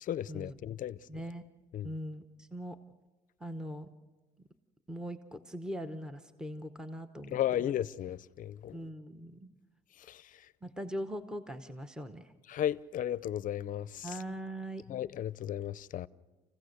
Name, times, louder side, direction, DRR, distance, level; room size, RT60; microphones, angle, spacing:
voice 1, 0.0-1.1 1.7-1.9 7.3-8.8 10.0-10.5 12.5-14.2 14.9-16.1, left 11 dB, 50° left, 0.6 m, -35 dB
voice 2, 1.1-1.4 1.8-2.8 3.4-3.9 4.4-4.5 4.9-7.4 8.7-9.5 10.6-12.3 14.0-14.8, equal, 5° right, 0.9 m, -41 dB
28.5 x 16.0 x 6.6 m
cardioid pair, 110°, 17 cm